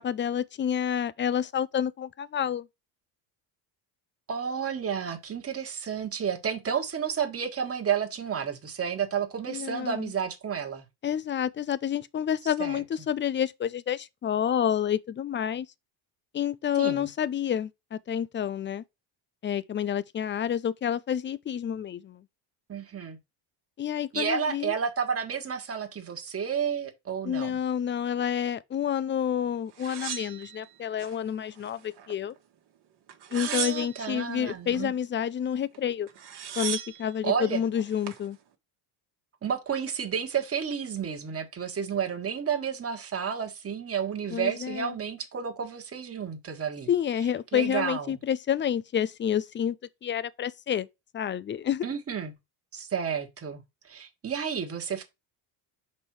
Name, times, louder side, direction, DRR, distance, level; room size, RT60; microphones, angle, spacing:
voice 1, 0.0-2.7 9.5-10.1 11.0-15.7 16.3-18.8 19.4-22.2 23.8-24.7 27.2-32.3 33.3-36.1 36.6-38.4 44.3-44.9 46.9-49.8 50.0-50.9 51.1-51.9, left 9 dB, 25° left, 0.4 m, -29 dB
voice 2, 4.3-10.8 12.6-12.8 16.8-17.1 22.7-23.2 24.1-27.6 33.3-34.9 37.2-37.6 39.4-46.9 47.5-48.2 51.8-52.3 52.7-55.0, right 7 dB, 30° right, 1.5 m, -31 dB
sound 1, 29.8-31.1 31.6-32.4 33.1-34.2 35.7-35.8 36.1-37.1 37.7-38.2, right 9 dB, 55° right, 1.5 m, -36 dB
5.3 x 4.4 x 4.7 m
cardioid pair, 95°, 46 cm